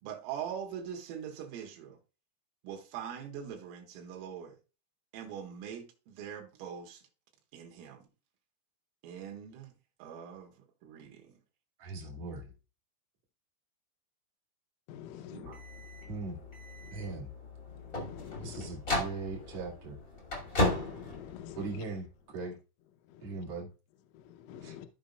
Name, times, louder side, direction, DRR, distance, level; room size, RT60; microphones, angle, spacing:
voice 1, 0.0-2.0 2.6-4.6 5.1-7.0 7.5-8.1 9.0-9.7 10.0-10.5 10.8-11.4 15.3-15.6, right 8 dB, 80° right, 3.7 m, -42 dB
voice 2, 11.8-12.4 16.1-16.4 16.9-17.3 18.4-20.0 21.6-22.6 23.2-23.7 24.6-24.7, right 3 dB, 65° right, 1.5 m, -39 dB
voice 3, 14.9-15.5 18.1-18.5 20.7-21.6 24.5-24.9, left 10 dB, 80° left, 3.1 m, -45 dB
sound 1, 15.4-22.0, left 1 dB, 50° left, 0.9 m, -36 dB
14.5 x 5.2 x 2.3 m
omnidirectional pair, 5.9 m